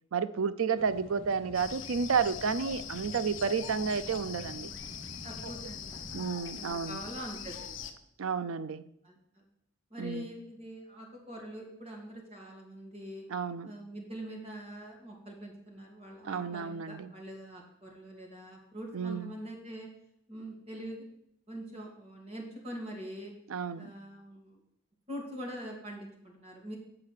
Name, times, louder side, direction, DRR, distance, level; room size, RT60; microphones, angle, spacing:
voice 1, 0.1-4.7 6.1-7.0 8.2-8.8 10.0-10.3 13.3-13.7 16.2-17.1 18.9-19.3 23.5-23.9, right 6 dB, 90° right, 0.5 m, -31 dB
sound 1, 0.7-6.3, equal, 5° left, 2.5 m, -50 dB
sound 2, 1.5-7.9, left 7 dB, 70° left, 0.7 m, -42 dB
voice 2, 5.2-6.0 6.5-7.9 9.0-9.4 9.9-13.2 13.6-19.9 20.3-21.1 21.5-23.3 23.7-24.6 25.1-26.8, equal, 30° right, 2.1 m, -44 dB
7.7 x 5.3 x 6.6 m
head